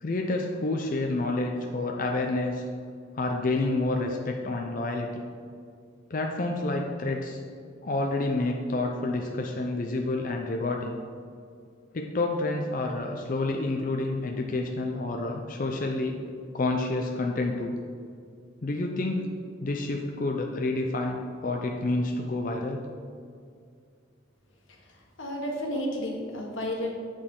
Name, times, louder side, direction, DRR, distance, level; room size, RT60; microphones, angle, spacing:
voice 1, 0.0-2.6 3.1-5.2 6.1-7.4 7.8-11.0 11.9-16.2 16.5-17.7 18.6-19.3 19.6-22.8, left 2 dB, 45° left, 1 dB, 0.5 m, -29 dB
voice 2, 24.7-26.9, left 1 dB, 85° left, 0 dB, 1.4 m, -32 dB
8.0 x 6.4 x 3.7 m, 2.3 s
head